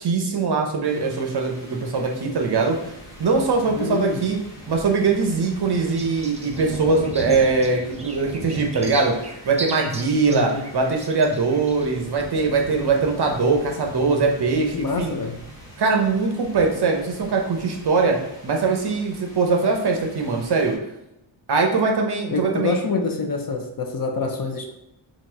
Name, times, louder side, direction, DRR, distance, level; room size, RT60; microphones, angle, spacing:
voice 1, 0.0-2.8 3.2-4.4 4.7-9.2 9.4-15.1 15.8-18.2 18.4-20.8 21.5-22.8, right 4 dB, 55° right, 2 dB, 0.8 m, -21 dB
sound 1, 0.8-20.7, right 1 dB, 5° left, 1.3 m, -40 dB
voice 2, 3.7-4.2 10.2-10.6 14.7-15.4 22.3-24.7, left 4 dB, 45° left, 4 dB, 0.6 m, -26 dB
sound 2, 3.8-4.9 5.3-11.9, right 2 dB, 15° right, 0.4 m, -38 dB
4.0 x 2.5 x 4.5 m, 0.87 s
wide cardioid pair, 160°, 49 cm